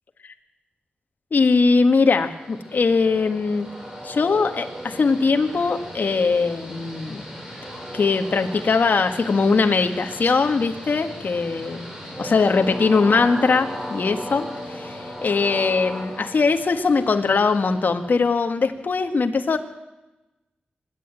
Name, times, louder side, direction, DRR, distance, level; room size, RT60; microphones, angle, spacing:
voice 1, 1.3-3.7 4.0-7.3 7.9-11.9 12.2-19.6, left 4 dB, 60° left, 6 dB, 1.7 m, -21 dB
Train, 1.8-18.5, equal, 10° right, 5.1 m, -37 dB
26.0 x 11.0 x 8.9 m, 1.0 s
wide cardioid pair, 100°, 3 cm